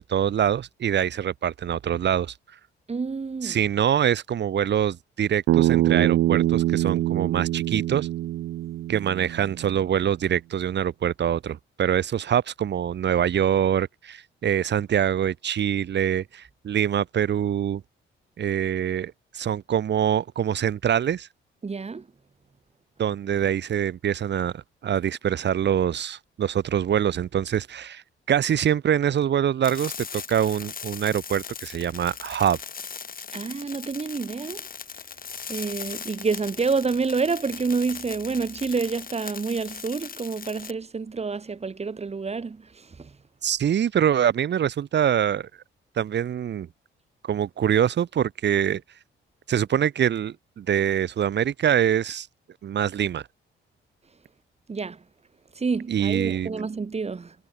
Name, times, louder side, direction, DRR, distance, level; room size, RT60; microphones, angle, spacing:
voice 1, 0.0-2.3 3.4-8.1 8.9-17.8 18.4-21.3 23.0-28.0 28.3-32.6 43.4-45.5 46.0-46.7 47.2-48.8 49.5-52.3 52.6-53.2 55.9-56.5, right 9 dB, 60° right, 5.5 m, -24 dB
voice 2, 2.9-3.6 21.6-22.1 33.3-34.6 35.5-43.1 54.7-55.0 55.5-57.3, right 4 dB, 30° right, 6.8 m, -28 dB
Bass guitar, 5.5-9.7, right 14 dB, 80° right, 1.1 m, -24 dB
sound 1, 29.6-40.7, left 6 dB, 45° left, 6.1 m, -39 dB
cardioid pair, 90°, 20 cm